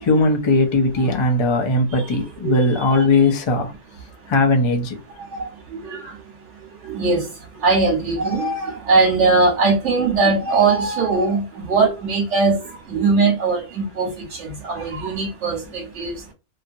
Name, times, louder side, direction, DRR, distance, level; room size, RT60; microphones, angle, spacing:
voice 1, 0.0-3.7 4.3-5.0, left 2 dB, 45° left, 0.3 m, -18 dB
voice 2, 6.9-7.2 7.6-12.5 12.9-14.1 14.6-16.1, right 3 dB, 75° right, 1.2 m, -19 dB
2.8 x 2.3 x 2.5 m
omnidirectional pair, 1.2 m